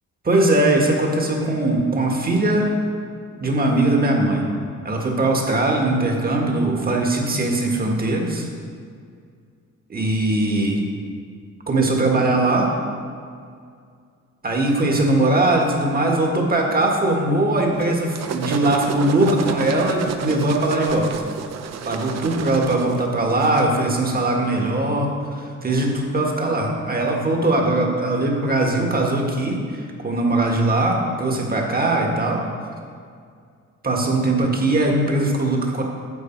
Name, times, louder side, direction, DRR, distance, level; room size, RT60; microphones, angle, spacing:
voice 1, 0.2-2.8 3.4-4.5 4.8-8.5 9.9-10.8 11.7-12.7 14.4-21.1 21.8-32.4 33.8-35.8, right 2 dB, 30° right, 1 dB, 1.7 m, -20 dB
sound 1, 17.8-23.7, right 7 dB, 60° right, 0.7 m, -31 dB
9.8 x 7.1 x 4.6 m, 2.2 s
cardioid pair, 90°, 30 cm